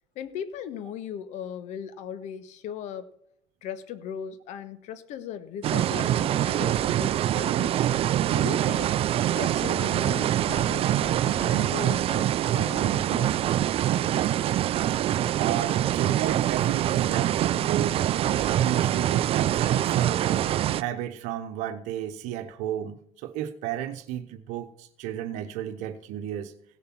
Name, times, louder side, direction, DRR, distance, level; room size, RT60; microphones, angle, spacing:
voice 1, 0.1-3.1 3.6-7.7 8.3-8.9 9.3-13.4 15.4-15.5, left 8 dB, 60° left, 12 dB, 1.4 m, -38 dB
sound 1, 5.6-20.8, right 12 dB, 45° right, 0.5 m, -24 dB
voice 2, 15.3-26.5, right 11 dB, 65° right, 8 dB, 1.1 m, -33 dB
16.5 x 6.8 x 6.0 m, 0.69 s
hypercardioid pair, 70°, 13 cm